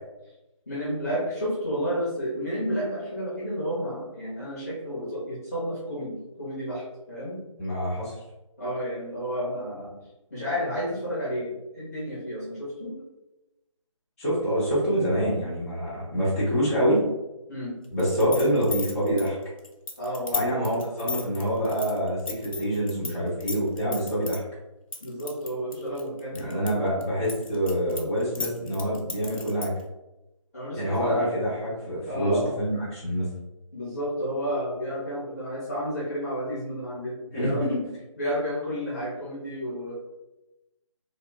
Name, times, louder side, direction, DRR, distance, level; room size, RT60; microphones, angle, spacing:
voice 1, 0.7-7.4 8.6-10.0 10.3-13.0 17.5-17.8 20.0-20.6 25.0-26.7 30.5-31.2 32.0-32.5 33.7-37.7 38.2-39.9, equal, 30° left, -7 dB, 0.9 m, -31 dB
voice 2, 7.6-8.1 14.2-17.0 17.9-19.4 20.3-24.4 26.3-29.7 30.7-33.3 37.3-37.8, equal, 5° left, -12 dB, 1.1 m, -26 dB
sound 1, 18.0-23.1 23.4-24.4 24.9-26.7 27.0-29.8, left 5 dB, 80° left, 0.8 m, -34 dB
2.9 x 2.4 x 3.5 m, 0.98 s
figure-of-eight pair, 180°, 17 cm